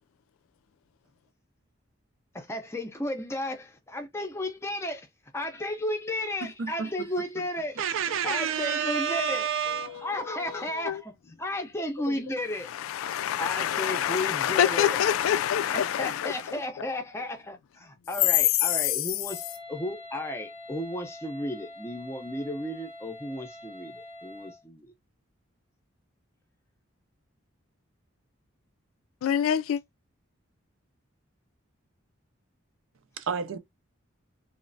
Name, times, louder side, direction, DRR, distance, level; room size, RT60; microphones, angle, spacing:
voice 1, 2.3-7.8 8.2-9.5 10.0-12.7 13.4-15.0 15.7-24.9, left 1 dB, 15° left, 0.5 m, -34 dB
voice 2, 7.8-10.0 33.2-33.6, right 7 dB, 75° right, 0.5 m, -29 dB
voice 3, 12.9-16.3 29.2-29.8, left 9 dB, 85° left, 0.3 m, -26 dB
Wind instrument woodwind instrument, 19.3-24.6, left 1 dB, 25° right, 0.7 m, -45 dB
3.0 x 2.1 x 2.6 m
head